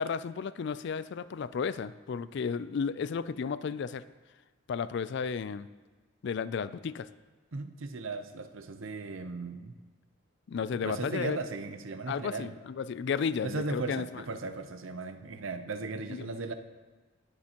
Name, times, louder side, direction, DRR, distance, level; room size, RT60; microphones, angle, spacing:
voice 1, 0.0-4.0 4.7-5.7 6.2-7.1 10.5-11.4 12.1-14.1 16.1-16.3, left 6 dB, 55° left, 15 dB, 0.3 m, -33 dB
voice 2, 7.5-9.8 10.8-12.6 13.4-16.5, right 3 dB, 70° right, 8 dB, 0.7 m, -37 dB
19.0 x 6.7 x 2.9 m, 1.3 s
head